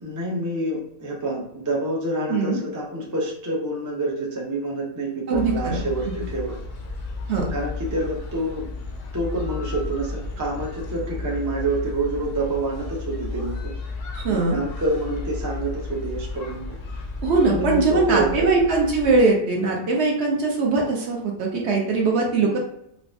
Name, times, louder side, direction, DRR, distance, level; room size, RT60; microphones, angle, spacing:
voice 1, 0.0-6.6 7.5-8.7 9.1-13.8 14.3-16.6 17.5-18.5 22.4-22.6, right 2 dB, 25° right, -3 dB, 0.4 m, -27 dB
sound 1, 5.3-19.2, left 3 dB, 70° left, 1.0 m, -33 dB
voice 2, 5.3-6.1 7.3-7.5 14.1-14.6 17.2-22.6, right 3 dB, 60° right, -1 dB, 1.0 m, -21 dB
4.7 x 2.1 x 2.5 m, 0.76 s
omnidirectional pair, 1.4 m